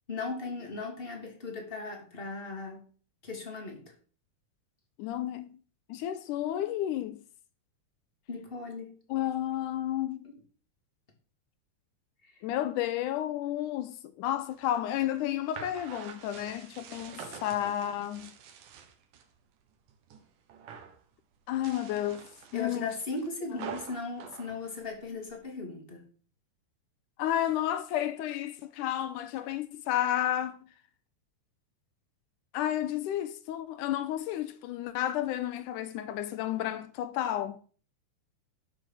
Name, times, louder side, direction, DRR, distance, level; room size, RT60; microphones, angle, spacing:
voice 1, 0.1-2.8 3.2-3.9 8.3-8.9 10.2-10.4 12.2-12.4 22.5-26.1, left 3 dB, 20° left, 2.8 m, -38 dB
voice 2, 5.0-5.6 5.9-7.2 9.1-10.2 12.4-18.3 21.5-22.3 22.5-22.9 23.6-23.7 27.2-30.6 32.5-37.6, left 12 dB, 80° left, 2.3 m, -31 dB
sound 1, 14.4-19.3 19.7-20.2 20.5-21.0 21.5-25.4, right 7 dB, 90° right, 2.9 m, -46 dB
12.0 x 6.0 x 6.7 m
omnidirectional pair, 3.6 m